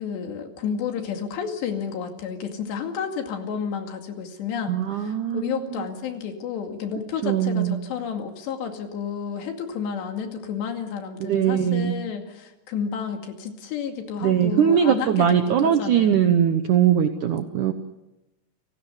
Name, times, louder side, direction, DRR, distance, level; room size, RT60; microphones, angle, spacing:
voice 1, 0.0-16.2, left 7 dB, 75° left, 4 dB, 4.5 m, -31 dB
voice 2, 4.7-5.9 7.2-7.8 11.2-11.9 14.2-17.7, right 9 dB, 70° right, 7 dB, 1.9 m, -21 dB
29.5 x 17.5 x 8.2 m, 0.97 s
omnidirectional pair, 5.0 m